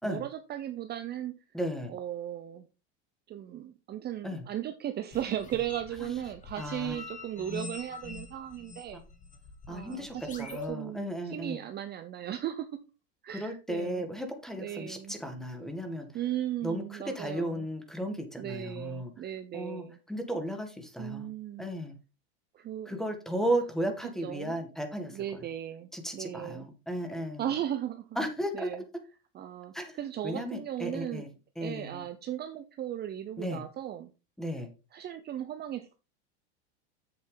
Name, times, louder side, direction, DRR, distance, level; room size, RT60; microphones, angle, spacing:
voice 1, 0.0-1.3 1.9-2.7 3.3-9.0 9.7-12.8 13.2-14.1 14.6-15.1 16.1-17.7 18.4-20.0 21.0-21.7 22.5-23.0 24.2-24.6 25.1-26.7 27.4-28.1 28.5-28.8 29.3-31.2 31.6-34.1 34.9-36.0, right 11 dB, 30° right, 8 dB, 0.8 m, -37 dB
voice 2, 1.5-1.9 4.2-4.4 6.6-6.9 9.7-11.6 13.3-16.1 16.6-19.1 19.5-21.3 21.6-21.9 22.8-25.2 25.9-27.5 28.2-28.7 29.7-30.0 30.2-31.3 31.6-32.0 33.4-33.6 34.4-34.7, equal, ahead, 5 dB, 1.8 m, -34 dB
sound 1, 5.1-10.7, left 3 dB, 20° left, 2.1 m, -45 dB
8.2 x 6.8 x 3.9 m, 0.30 s
supercardioid pair, 125°, 34 cm